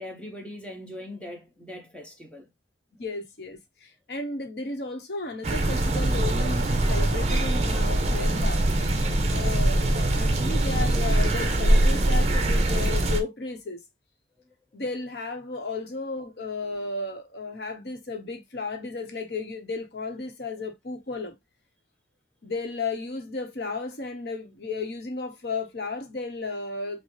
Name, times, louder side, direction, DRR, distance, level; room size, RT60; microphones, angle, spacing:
voice 1, 0.0-2.5, left 1 dB, 5° left, 0.9 m, -41 dB
voice 2, 3.0-8.7 9.3-13.8 14.7-21.3 22.4-27.0, left 3 dB, 70° left, 0.9 m, -34 dB
sound 1, 5.4-13.2, right 1 dB, 40° right, 0.6 m, -23 dB
5.5 x 2.1 x 3.0 m
head